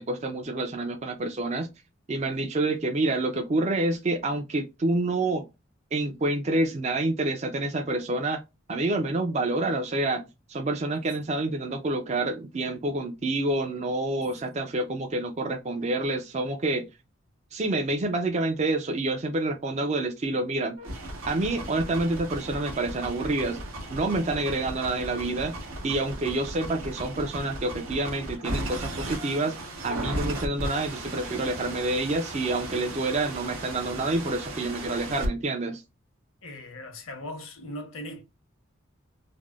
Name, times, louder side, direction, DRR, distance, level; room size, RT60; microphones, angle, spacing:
voice 1, 0.0-1.7 2.1-5.5 5.9-8.4 8.7-10.2 10.5-16.9 17.5-20.8 21.3-23.6 23.9-25.6 25.8-29.5 29.8-35.8, right 2 dB, 30° right, 0.4 m, -28 dB
sound 1, 20.8-35.3, right 1 dB, 90° right, 1.2 m, -36 dB
voice 2, 36.4-38.2, left 1 dB, 75° left, 0.9 m, -39 dB
3.4 x 2.0 x 2.3 m
head